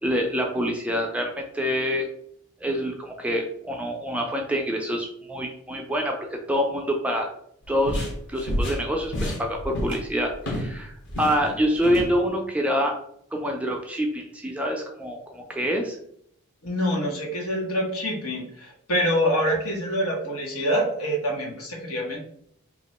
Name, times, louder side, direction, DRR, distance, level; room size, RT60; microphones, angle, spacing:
voice 1, 0.0-2.1 2.6-7.3 7.7-12.9 13.3-16.0, equal, 5° right, 1 dB, 0.3 m, -26 dB
sound 1, 7.6-10.8 11.1-12.1, left 1 dB, 50° left, 1.0 m, -29 dB
voice 2, 16.6-22.2, equal, 80° left, -1 dB, 1.2 m, -26 dB
2.9 x 2.5 x 4.1 m, 0.68 s
head